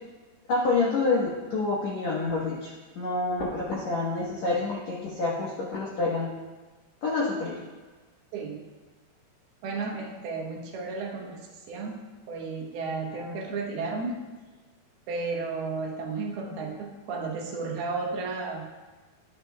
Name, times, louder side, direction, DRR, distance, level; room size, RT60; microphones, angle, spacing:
voice 1, 0.5-6.3 7.0-7.5, left 3 dB, 70° left, -5 dB, 1.6 m, -28 dB
voice 2, 9.6-11.4 11.7-14.2 15.1-18.7, right 4 dB, 75° right, -1 dB, 2.8 m, -33 dB
12.0 x 9.8 x 2.2 m, 1.3 s
omnidirectional pair, 4.8 m